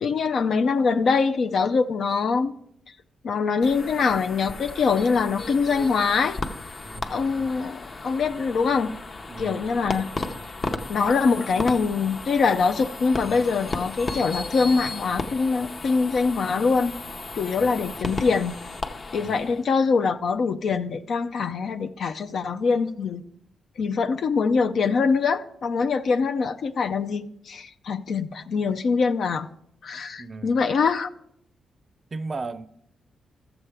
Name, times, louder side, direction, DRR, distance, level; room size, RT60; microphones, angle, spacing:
voice 1, 0.0-2.6 3.2-6.4 7.1-8.9 9.4-10.1 10.9-16.9 17.3-18.6 19.1-23.2 23.8-29.5 29.8-31.1, left 5 dB, 65° left, 0.4 m, -23 dB
sound 1, 3.6-19.6, left 3 dB, 40° left, 0.8 m, -35 dB
voice 2, 6.8-7.6 9.3-9.7 17.6-17.9 19.2-19.5 30.2-30.6 32.1-32.7, right 3 dB, 40° right, 0.5 m, -37 dB
13.5 x 7.0 x 3.4 m
cardioid pair, 75°, 0 cm